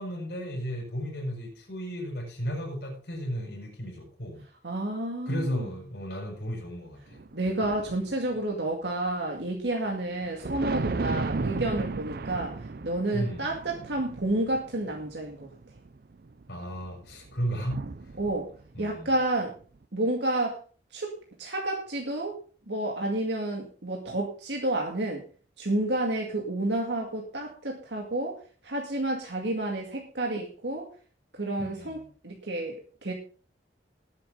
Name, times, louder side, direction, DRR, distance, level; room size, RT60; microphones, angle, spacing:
voice 1, 0.0-4.4 5.2-7.2 13.1-13.5 16.5-17.8 18.7-19.1 31.6-32.0, equal, 60° left, -2 dB, 6.4 m, -34 dB
voice 2, 4.6-5.6 7.3-12.5 12.8-15.5 18.2-18.5 18.8-19.5 19.9-20.6 20.9-22.4 22.7-25.2 25.6-28.4 28.6-30.9 31.3-32.8 33.0-33.1, right 1 dB, 75° right, 1 dB, 2.1 m, -30 dB
sound 1, 7.1-8.4 10.0-19.2, right 3 dB, 55° right, 0.6 m, -35 dB
19.0 x 7.6 x 3.8 m, 0.39 s
head